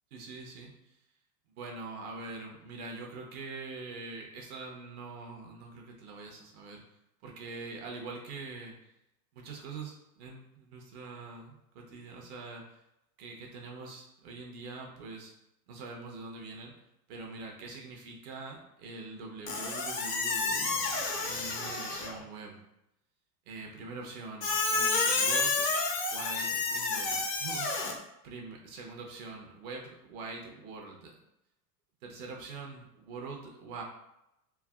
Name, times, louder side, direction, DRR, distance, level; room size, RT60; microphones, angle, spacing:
voice 1, 0.1-0.9 1.6-6.8 7.2-8.7 9.3-12.7 13.2-15.3 15.7-16.7 17.1-20.8 21.2-22.6 23.5-25.7 26.1-27.7 28.2-31.1 32.0-33.8, right 3 dB, 60° right, 1 dB, 0.8 m, -44 dB
Squeak, 19.5-22.2 24.4-27.9, left 3 dB, 30° left, 0.4 m, -30 dB
3.2 x 2.0 x 2.3 m, 0.87 s
hypercardioid pair, 110°, 49 cm